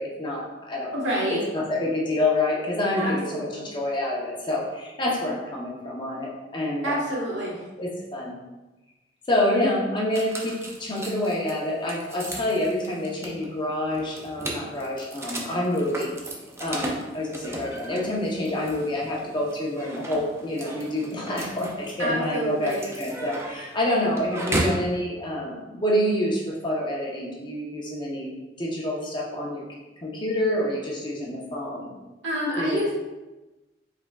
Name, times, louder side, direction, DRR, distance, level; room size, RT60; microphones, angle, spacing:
voice 1, 0.0-0.9 1.3-7.0 7.5-8.3 9.3-16.1 16.6-28.3 28.6-29.6 30.0-31.9 32.6-32.9, left 1 dB, 25° left, -3 dB, 0.7 m, -27 dB
voice 2, 0.9-1.4 3.0-3.7 6.8-7.5 22.0-22.8 32.2-32.9, equal, 80° right, -4 dB, 1.4 m, -28 dB
sound 1, 10.1-24.9, right 1 dB, 15° right, 0.4 m, -35 dB
4.8 x 3.5 x 2.3 m, 1.1 s
head